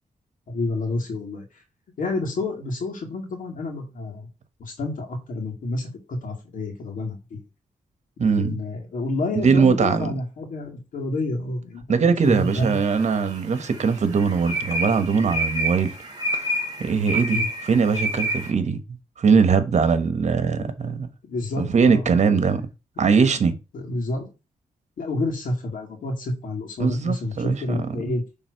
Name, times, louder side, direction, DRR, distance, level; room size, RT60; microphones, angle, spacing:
voice 1, 0.5-1.6 2.0-4.3 4.6-7.4 8.2-12.8 17.3-17.5 21.2-22.4 23.0-23.1 23.7-24.3 25.0-28.2, left 2 dB, 75° left, 2.0 m, -29 dB
voice 2, 8.2-8.6 9.4-10.1 11.9-15.9 16.3-16.5 16.8-18.8 19.2-21.1 21.6-22.7 23.0-23.5 26.8-28.2, right 5 dB, 55° right, 1.2 m, -21 dB
sound 1, 12.5-13.2 13.6-18.5, right 1 dB, 30° right, 2.3 m, -28 dB
6.5 x 3.6 x 4.7 m
cardioid pair, 80°, 14 cm